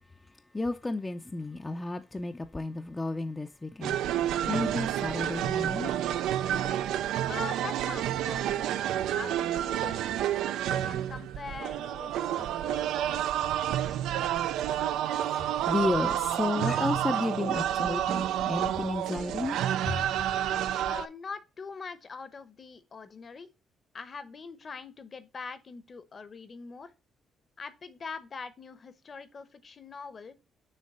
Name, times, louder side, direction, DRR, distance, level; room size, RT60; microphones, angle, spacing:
voice 1, 0.3-5.9 15.2-19.6 19.9-20.0, left 2 dB, 20° left, 0.4 m, -32 dB
sound 1, 3.8-21.1, right 11 dB, 85° right, 0.3 m, -29 dB
voice 2, 7.3-8.8 9.1-10.2 10.6-14.0 20.8-23.5 23.9-26.9 27.6-30.4, left 5 dB, 40° left, 0.8 m, -43 dB
6.5 x 3.2 x 5.4 m
cardioid pair, 90°, 0 cm